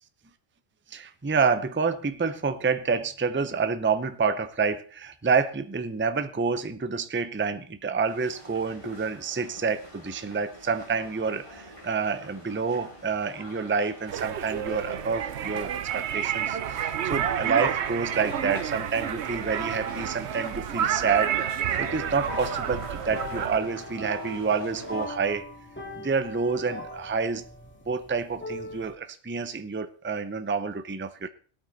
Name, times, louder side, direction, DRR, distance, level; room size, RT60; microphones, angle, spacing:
voice 1, 0.9-21.3 21.8-25.4 25.9-27.4 27.9-31.3, right 5 dB, 15° right, 11 dB, 0.6 m, -28 dB
sound 1, 8.1-25.1, equal, 25° left, 5.1 m, -46 dB
sound 2, 14.1-23.6, right 9 dB, 70° right, 1.0 m, -30 dB
sound 3, 21.7-28.9, left 1 dB, 10° left, 2.2 m, -40 dB
17.5 x 9.0 x 4.1 m, 0.43 s
omnidirectional pair, 1.2 m